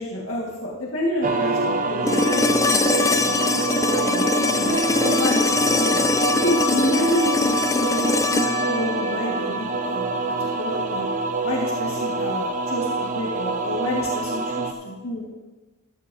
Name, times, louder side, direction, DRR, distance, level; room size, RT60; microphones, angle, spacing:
voice 1, 0.0-4.7 5.0-6.0 6.3-11.1 11.4-15.3, left 1 dB, 85° left, -4 dB, 1.7 m, -29 dB
sound 1, 1.2-14.7, right 3 dB, 40° right, 0.7 m, -26 dB
sound 2, 2.1-10.1 12.2-12.3, left 3 dB, 15° left, 0.3 m, -23 dB
13.0 x 12.5 x 2.7 m, 1.2 s
head